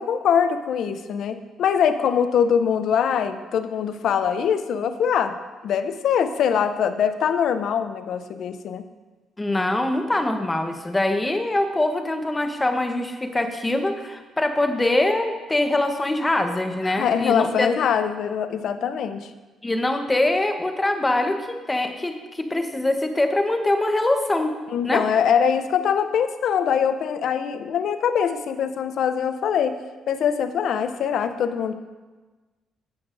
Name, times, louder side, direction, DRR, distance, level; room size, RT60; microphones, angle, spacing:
voice 1, 0.0-5.3 5.6-8.9 16.9-19.3 24.7-29.8 30.1-31.7, left 7 dB, 70° left, 10 dB, 0.5 m, -23 dB
voice 2, 9.4-17.7 19.6-24.5 24.8-25.0, left 1 dB, 15° left, 5 dB, 0.9 m, -23 dB
14.5 x 6.0 x 2.6 m, 1.3 s
cardioid pair, 90°, 0 cm